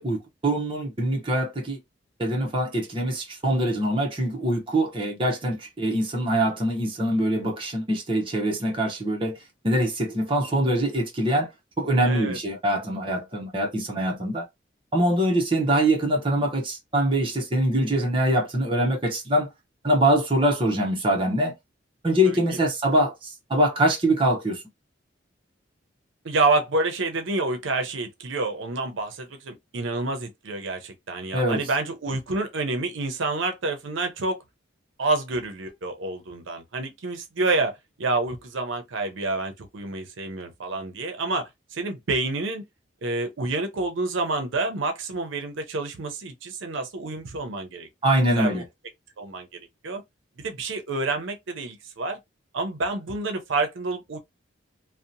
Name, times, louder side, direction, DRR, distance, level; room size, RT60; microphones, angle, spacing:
voice 1, 0.0-1.8 2.2-9.3 9.6-11.5 11.8-14.4 14.9-19.5 19.8-21.5 22.0-24.6 31.3-31.6 48.0-48.6, right 1 dB, 25° right, 0.7 m, -23 dB
voice 2, 12.0-12.4 22.3-22.4 26.2-34.4 35.0-37.7 38.0-42.6 43.0-47.9 48.4-48.6 49.2-49.5 49.8-50.0 50.4-52.2 52.5-54.2, right 3 dB, 80° right, 0.6 m, -28 dB
2.7 x 2.1 x 2.6 m
head